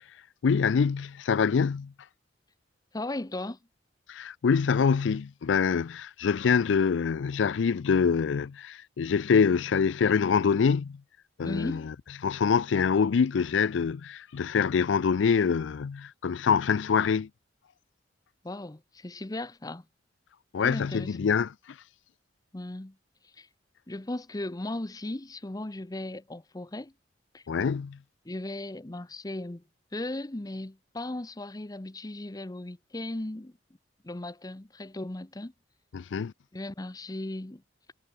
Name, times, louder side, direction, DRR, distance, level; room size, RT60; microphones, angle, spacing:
voice 1, 0.4-1.9 4.1-11.0 11.4-11.9 12.2-17.3 20.5-21.8 27.5-28.0 35.9-36.3, left 6 dB, 70° left, 0.4 m, -25 dB
voice 2, 2.9-3.6 11.4-12.0 18.4-19.8 20.6-21.2 22.5-23.0 23.4-23.5 23.9-26.9 27.3-27.4 28.2-29.6 29.9-33.5 34.0-35.5 36.5-37.6, left 1 dB, 20° left, 0.7 m, -36 dB
head